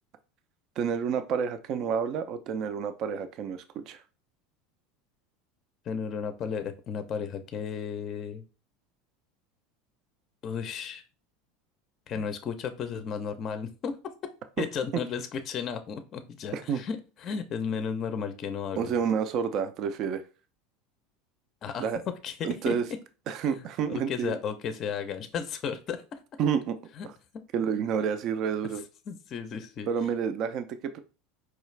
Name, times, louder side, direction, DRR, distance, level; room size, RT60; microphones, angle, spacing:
voice 1, 0.8-4.0 14.6-14.7 16.5-16.8 18.8-20.2 21.8-22.0 22.4-22.8 23.3-24.4 26.4-26.8 27.5-28.8 29.9-31.0, right 7 dB, 50° right, 10 dB, 0.4 m, -29 dB
voice 2, 5.9-8.4 10.4-11.0 12.1-13.9 14.6-18.9 21.6-21.9 22.2-22.8 23.9-26.0 27.0-27.1 27.3-27.4 29.1-29.9, left 6 dB, 40° left, 9 dB, 0.5 m, -34 dB
4.6 x 2.4 x 3.2 m, 0.34 s
supercardioid pair, 115°, 0 cm